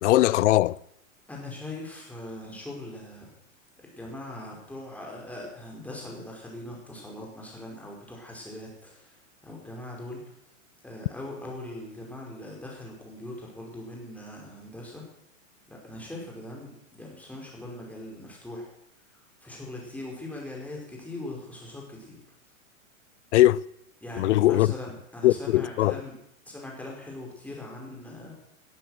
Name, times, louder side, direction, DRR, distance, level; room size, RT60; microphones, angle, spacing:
voice 1, 0.0-0.8 23.3-23.6 24.2-24.7 25.2-26.0, left 15 dB, 60° left, 0.7 m, -20 dB
voice 2, 1.3-3.3 3.8-10.2 10.8-15.1 15.7-18.7 19.1-22.2 24.0-26.1 26.4-28.3, left 1 dB, 5° left, 5.0 m, -41 dB
19.0 x 10.5 x 6.5 m
supercardioid pair, 150°, 40 cm